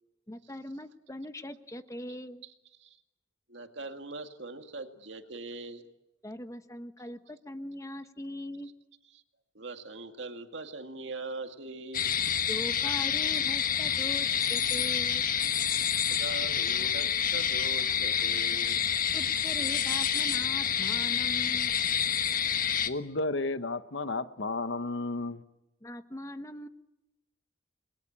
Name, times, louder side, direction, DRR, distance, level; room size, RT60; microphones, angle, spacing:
voice 1, 0.3-2.4 6.2-8.7 12.5-15.3 19.1-21.8 25.8-26.7, left 1 dB, 15° left, 9 dB, 1.2 m, -41 dB
voice 2, 3.5-5.9 9.5-12.1 16.1-18.8, right 3 dB, 65° right, 6 dB, 2.2 m, -41 dB
sound 1, 11.9-22.9, left 8 dB, 45° left, 1.3 m, -28 dB
voice 3, 22.8-25.4, left 2 dB, 70° left, 12 dB, 1.2 m, -32 dB
29.5 x 21.5 x 8.8 m, 0.93 s
head